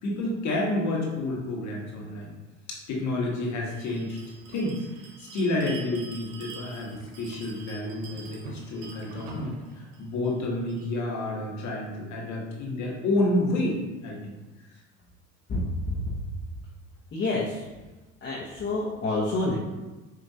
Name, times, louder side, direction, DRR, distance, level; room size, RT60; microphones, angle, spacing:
voice 1, 0.0-2.3 2.9-4.2 4.5-4.8 5.2-14.3, left 2 dB, 50° left, -2 dB, 1.4 m, -29 dB
Bell, 3.7-10.9, right 3 dB, 80° right, 0.9 m, -45 dB
voice 2, 15.5-16.0 17.1-17.6 18.2-19.6, left 2 dB, 35° left, -6 dB, 1.1 m, -28 dB
4.7 x 2.8 x 2.8 m, 1.1 s
hypercardioid pair, 80°, 35 cm